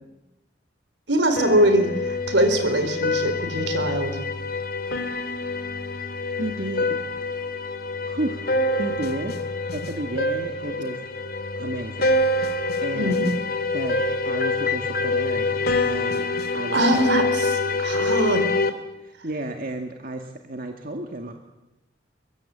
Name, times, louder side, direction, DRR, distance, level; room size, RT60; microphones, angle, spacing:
voice 1, 1.1-4.2 13.0-13.3 16.7-18.4, right 1 dB, 80° right, 8 dB, 4.4 m, -22 dB
sound 1, 1.4-18.7, left 2 dB, 55° left, 2.4 m, -26 dB
voice 2, 6.4-7.4 8.0-9.4 9.7-11.0 11.5-13.3 13.7-16.3 16.5-17.2 19.0-21.3, right 1 dB, 55° right, 4 dB, 2.1 m, -33 dB
24.0 x 23.5 x 8.7 m, 0.96 s
head